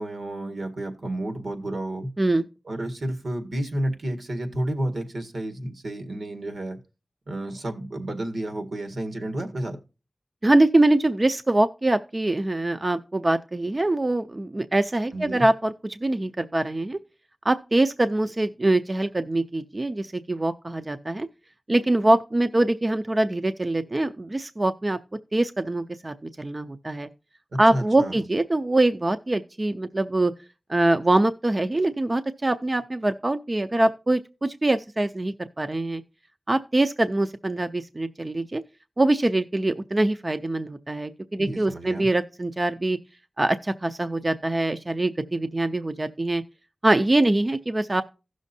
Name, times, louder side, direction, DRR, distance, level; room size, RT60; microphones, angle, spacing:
voice 1, 0.0-2.1 2.6-6.8 7.3-9.8 15.1-15.5 27.5-28.2 41.4-42.1, right 1 dB, 75° right, 1.8 m, -31 dB
voice 2, 10.4-17.0 17.4-21.3 21.7-25.0 25.3-27.1 27.6-30.3 30.7-36.0 36.5-38.6 39.0-43.0 43.4-46.4 46.8-48.0, right 2 dB, 35° right, 0.6 m, -23 dB
16.0 x 6.3 x 2.7 m
wide cardioid pair, 80°, 0 cm